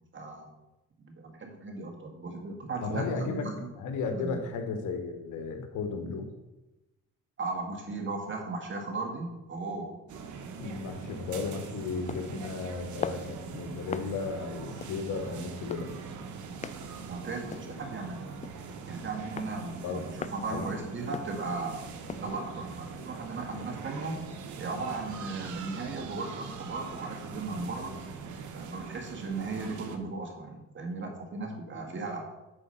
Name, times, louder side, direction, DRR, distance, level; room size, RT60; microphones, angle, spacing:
voice 1, 0.1-0.5 1.0-3.7 4.1-4.4 7.4-9.9 17.1-18.2 18.9-20.0 20.3-21.8 22.2-24.2 24.6-28.0 28.5-32.2, right 3 dB, 40° right, 2 dB, 1.9 m, -36 dB
voice 2, 2.8-3.5 3.8-6.3 10.6-15.9 19.8-20.0 20.5-20.7 31.7-31.9, left 4 dB, 85° left, 6 dB, 1.4 m, -34 dB
sound 1, 10.1-30.0, right 5 dB, 75° right, 1.1 m, -42 dB
sound 2, 12.1-22.3, left 6 dB, 25° left, 0.3 m, -43 dB
8.4 x 4.9 x 5.7 m, 1.0 s
cardioid pair, 90°, 30 cm